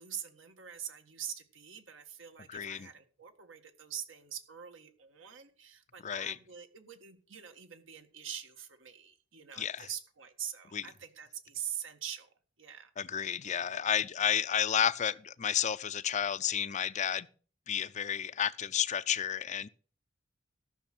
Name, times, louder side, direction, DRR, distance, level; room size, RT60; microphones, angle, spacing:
voice 1, 0.0-12.9, right 9 dB, 75° right, 1.7 m, -44 dB
voice 2, 2.5-2.9 6.0-6.4 9.6-9.9 10.7-10.8 13.0-17.3 17.7-19.7, left 9 dB, 35° left, 0.5 m, -31 dB
13.5 x 6.4 x 6.0 m
head